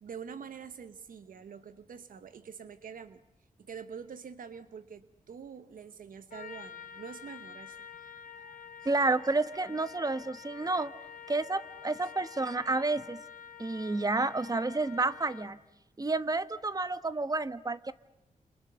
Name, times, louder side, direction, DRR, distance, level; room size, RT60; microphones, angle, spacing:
voice 1, 0.0-3.2 3.6-8.1 8.4-8.6 12.0-12.1, right 6 dB, 80° right, 12 dB, 1.1 m, -46 dB
Trumpet, 6.3-15.7, left 8 dB, 80° left, 2.7 m, -48 dB
voice 2, 8.8-10.9 11.3-13.2 13.6-15.6 16.0-17.9, right 3 dB, 25° right, 13 dB, 1.2 m, -30 dB
28.5 x 28.0 x 6.9 m, 0.89 s
cardioid pair, 80°, 14 cm